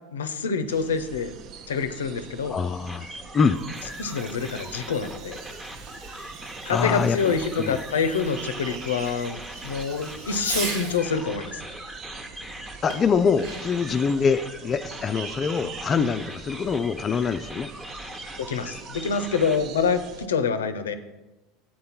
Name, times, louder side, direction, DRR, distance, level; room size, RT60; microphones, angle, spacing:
voice 1, 0.1-1.3 1.7-2.6 4.0-5.4 6.7-11.6 18.4-20.9, left 5 dB, 85° left, 11 dB, 0.5 m, -26 dB
sound 1, 0.7-20.3, right 6 dB, 50° right, 0.5 m, -44 dB
voice 2, 2.5-3.1 3.3-3.6 6.7-7.2 7.6-7.8 12.8-17.7, left 5 dB, 30° left, 8 dB, 0.3 m, -24 dB
sound 2, 2.9-19.6, equal, 10° right, 0.8 m, -41 dB
Fireworks, 3.4-11.1 12.9-13.9, right 3 dB, 75° right, 1.6 m, -39 dB
7.6 x 4.3 x 5.6 m, 1.1 s
hypercardioid pair, 80°, 0 cm